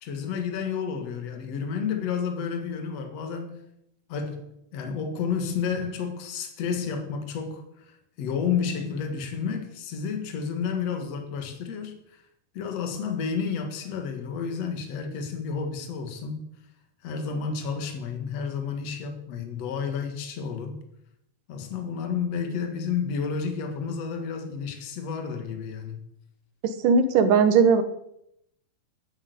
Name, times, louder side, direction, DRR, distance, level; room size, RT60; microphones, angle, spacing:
voice 1, 0.0-3.6 4.1-7.8 8.2-12.0 12.5-16.5 17.0-20.8 21.5-26.0, left 6 dB, 50° left, 2.7 m, -31 dB
voice 2, 26.8-27.8, right 5 dB, 65° right, 2.5 m, -18 dB
11.0 x 9.1 x 8.4 m
omnidirectional pair, 4.4 m